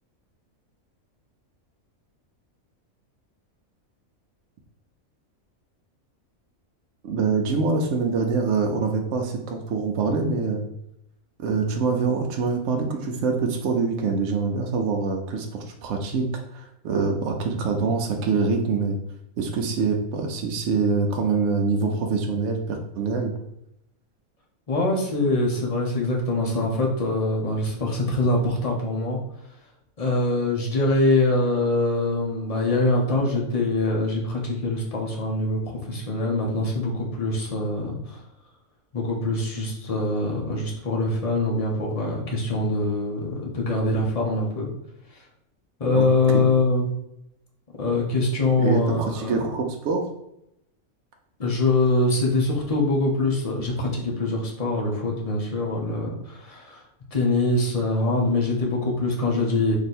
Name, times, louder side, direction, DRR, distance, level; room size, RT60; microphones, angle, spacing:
voice 1, 7.0-10.6 11.4-16.2 16.5-19.0 19.4-23.3 45.9-46.1 46.3-46.4 48.6-50.1, right 4 dB, 65° right, 2 dB, 0.9 m, -25 dB
voice 2, 24.7-29.2 30.0-38.2 38.9-44.7 45.1-45.2 45.8-46.9 47.8-49.4 51.4-56.8 57.1-59.8, left 2 dB, 35° left, -2 dB, 0.7 m, -24 dB
3.2 x 2.7 x 4.2 m, 0.80 s
omnidirectional pair, 1.4 m